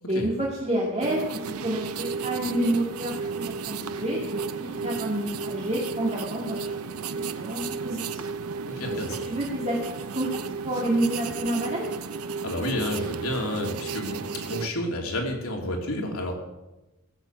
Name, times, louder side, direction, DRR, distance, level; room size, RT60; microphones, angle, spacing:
voice 1, 0.1-1.2 1.6-6.8 7.4-8.3 9.3-9.8 10.1-10.3 10.6-11.9, right 1 dB, 30° right, -4 dB, 2.5 m, -29 dB
Writing with pencil, 1.0-14.7, right 5 dB, 90° right, 0.8 m, -33 dB
voice 2, 8.6-9.2 12.4-16.3, left 1 dB, 75° left, 0 dB, 3.0 m, -30 dB
17.0 x 7.6 x 8.0 m, 1.0 s
head